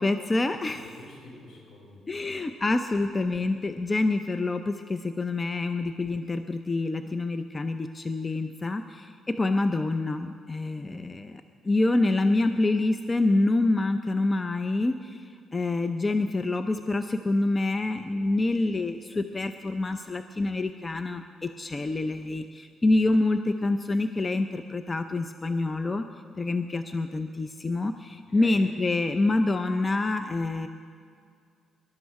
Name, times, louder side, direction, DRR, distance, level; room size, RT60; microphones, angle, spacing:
voice 1, 0.0-0.9 2.1-26.1 26.4-30.7, left 2 dB, 25° left, 8 dB, 0.6 m, -27 dB
voice 2, 0.7-2.5 11.3-11.7 28.3-28.8, left 2 dB, 75° left, 0 dB, 4.4 m, -48 dB
20.5 x 12.0 x 4.8 m, 2.3 s
cardioid pair, 90°, 0 cm